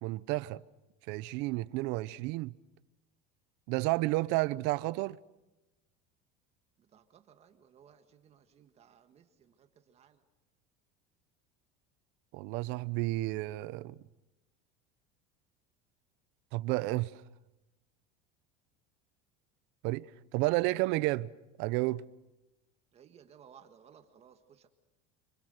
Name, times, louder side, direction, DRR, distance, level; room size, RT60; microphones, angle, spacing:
voice 1, 0.0-0.6 1.1-2.5 3.7-5.2 12.3-14.0 16.5-17.1 19.8-20.1 20.3-21.3 21.6-22.0, right 20 dB, 65° right, 0.8 m, -31 dB
voice 2, 6.8-10.2 22.9-24.7, right 8 dB, 35° right, 1.7 m, -59 dB
29.0 x 26.0 x 6.6 m
cardioid pair, 145°, 19 cm